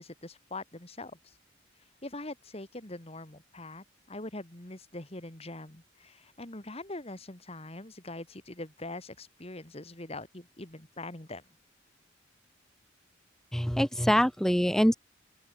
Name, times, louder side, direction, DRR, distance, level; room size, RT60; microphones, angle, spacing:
voice 1, 0.0-1.3 2.0-11.4, left 2 dB, 30° left, 2.3 m, -43 dB
voice 2, 13.5-14.9, equal, ahead, 0.5 m, -24 dB
open air
head